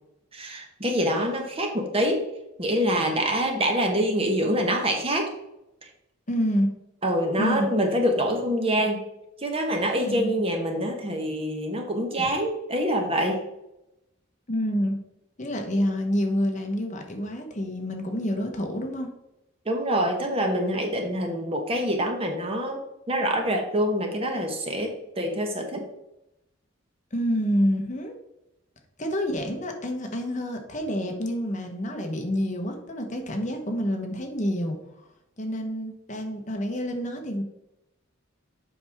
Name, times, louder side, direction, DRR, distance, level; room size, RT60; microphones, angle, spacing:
voice 1, 0.3-2.3 2.6-5.3 7.0-9.0 9.4-13.4 19.6-25.8, equal, 30° right, 3 dB, 1.1 m, -25 dB
voice 2, 6.3-6.7 7.4-7.7 10.1-10.3 14.5-14.9 15.4-19.1 27.1-28.1 29.0-34.8 35.4-37.4, equal, 35° left, 4 dB, 1.1 m, -28 dB
7.6 x 5.7 x 3.5 m, 0.88 s
head